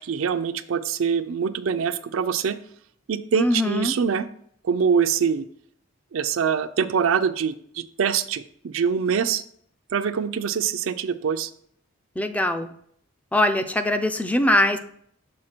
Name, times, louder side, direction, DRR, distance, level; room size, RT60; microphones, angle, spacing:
voice 1, 0.0-2.6 3.1-4.3 4.6-5.5 6.1-9.4 9.9-11.5, right 7 dB, 85° right, 10 dB, 0.4 m, -24 dB
voice 2, 3.3-4.0 12.2-12.7 13.3-14.8, left 1 dB, 5° left, 8 dB, 0.4 m, -22 dB
6.3 x 4.1 x 4.4 m, 0.64 s
head